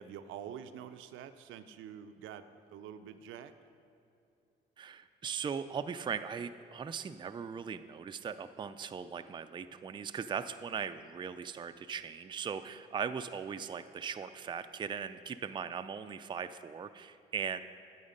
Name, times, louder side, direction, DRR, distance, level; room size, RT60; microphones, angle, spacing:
voice 1, 0.0-2.4 2.7-3.5, right 9 dB, 85° right, 9 dB, 0.5 m, -46 dB
voice 2, 4.8-17.6, right 7 dB, 25° right, 10 dB, 0.3 m, -39 dB
9.6 x 7.9 x 5.1 m, 2.7 s
cardioid pair, 90°, 20 cm